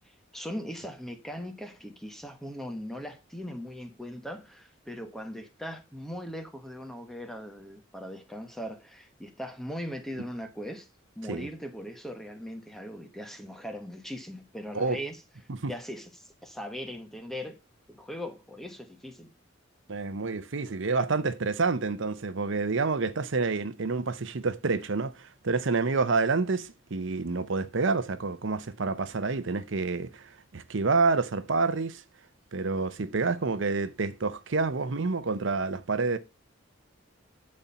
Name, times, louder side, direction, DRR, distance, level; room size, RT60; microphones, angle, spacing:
voice 1, 0.3-10.9 11.1-15.2 15.7-17.6 17.9-19.3, equal, ahead, 1.2 m, -39 dB
voice 2, 19.9-32.0 32.5-36.2, right 4 dB, 70° right, 0.8 m, -28 dB
11.0 x 4.4 x 5.5 m
head